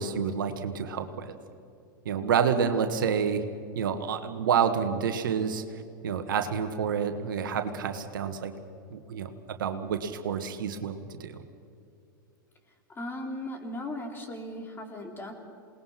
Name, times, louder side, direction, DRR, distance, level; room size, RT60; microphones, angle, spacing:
voice 1, 0.0-1.3 2.0-3.4 3.7-5.6 6.0-8.5 8.9-11.4, right 7 dB, 70° right, 7 dB, 1.6 m, -28 dB
voice 2, 13.0-15.3, left 1 dB, 20° left, 3 dB, 3.8 m, -37 dB
28.0 x 19.5 x 5.9 m, 2.5 s
hypercardioid pair, 95°, 11 cm